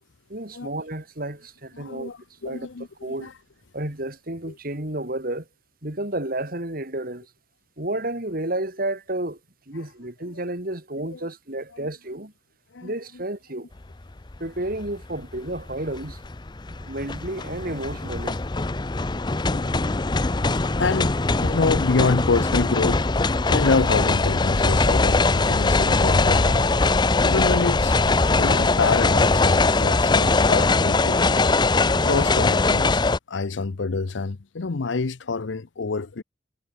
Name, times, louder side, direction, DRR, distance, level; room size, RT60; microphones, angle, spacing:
voice 1, 0.3-2.1 2.4-2.7 3.0-3.3 3.7-5.4 5.8-7.2 7.8-9.4 9.7-12.3 12.8-13.7 14.4-16.2 16.9-18.4, right 1 dB, 50° right, 3.9 m, -31 dB
voice 2, 1.7-3.3 4.5-4.6 10.3-10.4 11.1-11.3 11.7-11.9 12.7-13.2 19.5-19.7 20.8-21.2 21.4-26.7 27.2-31.4 32.0-33.0 33.3-36.2, left 4 dB, 85° left, 0.7 m, -27 dB
sound 1, 14.2-14.4 14.7-33.2, left 3 dB, 25° left, 0.6 m, -21 dB
head